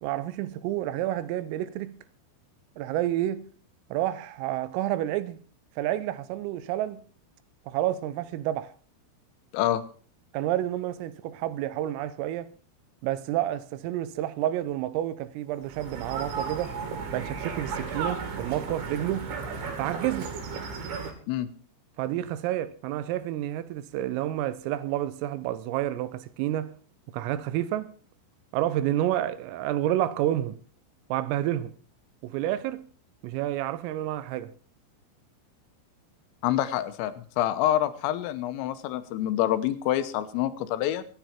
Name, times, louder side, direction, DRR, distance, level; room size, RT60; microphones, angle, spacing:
voice 1, 0.0-2.0 2.8-3.5 3.9-5.4 5.8-7.1 7.7-8.7 10.3-12.5 13.0-16.7 17.1-19.4 19.8-20.4 22.0-26.7 27.1-27.9 28.5-30.6 31.1-31.7 32.2-32.9 33.2-34.5, right 13 dB, 90° right, 3.6 m, -29 dB
sound 1, 15.6-21.1, right 5 dB, 70° right, 5.0 m, -34 dB
voice 2, 36.4-41.0, left 12 dB, 85° left, 3.7 m, -27 dB
26.0 x 9.5 x 4.5 m
omnidirectional pair, 5.8 m